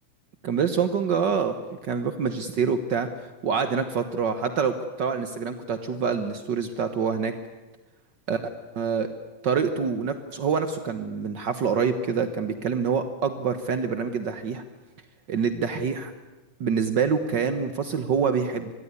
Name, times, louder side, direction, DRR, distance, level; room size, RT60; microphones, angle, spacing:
voice 1, 0.4-1.6 1.8-3.1 3.4-7.3 8.3-8.4 8.7-9.1 9.4-14.6 15.3-16.1 16.6-18.7, right 6 dB, 75° right, 10 dB, 1.0 m, -26 dB
25.5 x 21.5 x 9.7 m, 1.2 s
omnidirectional pair, 3.9 m